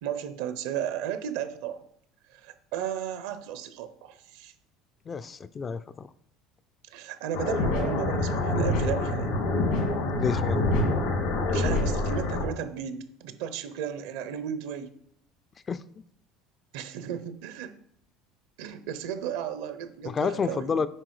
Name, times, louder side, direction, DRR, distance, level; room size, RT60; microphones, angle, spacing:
voice 1, 0.0-1.8 2.3-4.5 6.9-9.3 11.5-14.9 16.7-17.8 18.6-20.8, right 9 dB, 80° right, 11 dB, 0.8 m, -34 dB
voice 2, 5.1-6.1 10.1-10.6 15.7-15.8 20.0-20.9, left 5 dB, 25° left, 14 dB, 0.3 m, -29 dB
sound 1, 7.3-12.5, left 2 dB, 80° left, 2.4 m, -26 dB
7.6 x 4.9 x 4.8 m, 0.69 s
cardioid pair, 135°, 0 cm